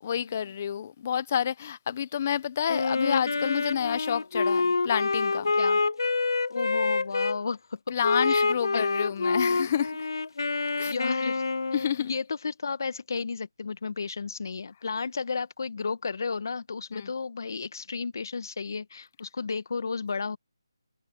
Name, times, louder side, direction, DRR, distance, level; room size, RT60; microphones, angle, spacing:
voice 1, 0.0-5.5 7.9-10.1 10.8-10.9 11.7-12.1 16.9-17.1, left 8 dB, 30° left, 0.8 m, -29 dB
Wind instrument woodwind instrument, 2.7-7.4 8.0-12.0, left 4 dB, 65° left, 0.5 m, -27 dB
voice 2, 6.5-7.8 8.3-8.4 8.7-8.9 10.9-11.4 12.0-20.4, left 4 dB, 50° left, 1.7 m, -33 dB
figure-of-eight pair, 170°, 2 cm